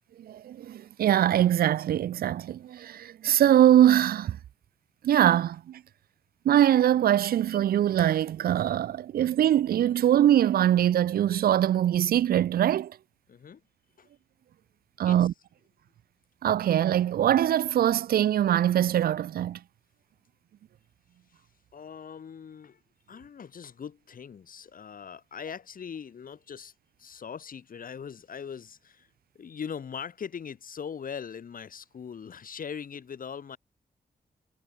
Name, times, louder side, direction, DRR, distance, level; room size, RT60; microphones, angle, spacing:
voice 1, 0.2-4.4 5.0-5.8 6.5-12.9 15.0-15.3 16.4-19.6, right 11 dB, 80° right, 0.4 m, -22 dB
voice 2, 13.3-13.6 14.0-14.1 15.0-15.3 21.3-21.4 21.7-22.8 23.1-26.7 27.0-29.1 29.3-33.6, left 7 dB, 65° left, 4.8 m, -41 dB
wide cardioid pair, 130°, 15 cm